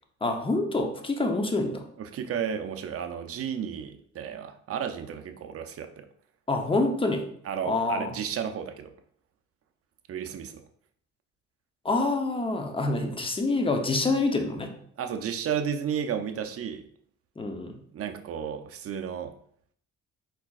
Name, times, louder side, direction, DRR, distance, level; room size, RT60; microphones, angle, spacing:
voice 1, 0.2-1.8 6.5-7.2 7.6-8.2 11.8-14.7 17.4-17.7, left 2 dB, 15° left, 4 dB, 0.7 m, -26 dB
voice 2, 2.0-6.1 7.4-8.9 10.1-10.5 15.0-16.8 17.9-19.3, right 8 dB, 50° right, 7 dB, 0.6 m, -33 dB
4.5 x 4.1 x 2.4 m, 0.62 s
cardioid pair, 90°, 30 cm